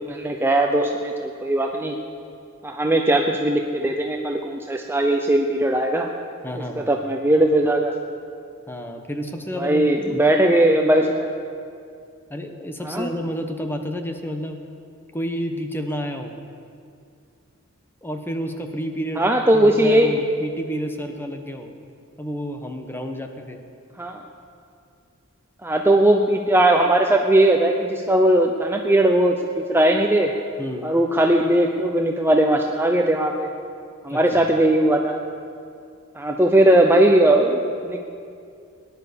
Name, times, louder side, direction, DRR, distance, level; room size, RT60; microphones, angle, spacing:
voice 1, 0.1-1.9 2.6-6.1 6.8-7.9 9.5-11.3 12.8-13.1 19.2-20.1 24.0-24.2 25.6-30.3 30.8-33.5 34.0-35.2 36.1-38.0, right 1 dB, 10° right, 2 dB, 0.7 m, -19 dB
voice 2, 6.4-6.9 8.7-10.2 12.3-14.6 15.1-16.3 18.0-21.7 22.2-23.6 30.6-30.8 34.1-34.4, equal, 10° left, 5 dB, 1.1 m, -30 dB
18.5 x 11.0 x 6.9 m, 2.4 s
head